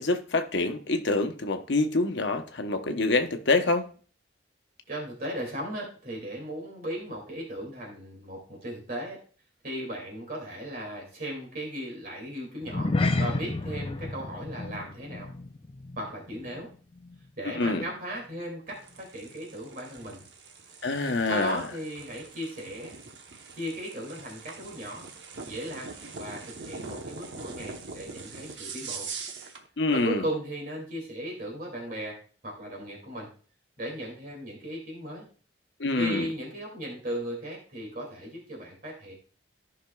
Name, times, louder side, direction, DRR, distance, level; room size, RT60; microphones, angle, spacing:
voice 1, 0.0-3.9 17.4-17.8 20.8-21.7 29.8-30.2 35.8-36.3, left 3 dB, 70° left, 0.9 m, -26 dB
voice 2, 4.9-9.2 9.6-12.9 13.2-15.3 16.0-16.7 17.4-20.2 21.2-23.0 23.5-25.1 25.5-29.1 29.9-32.2 32.4-33.3 33.8-35.2 36.0-39.1, equal, 50° right, 2.5 m, -36 dB
sound 1, 12.6-17.3 17.5-17.8 18.3-18.4, left 2 dB, 30° left, 0.5 m, -31 dB
sound 2, 18.7-29.7, right 4 dB, 70° right, 1.0 m, -43 dB
15.0 x 5.8 x 2.3 m
head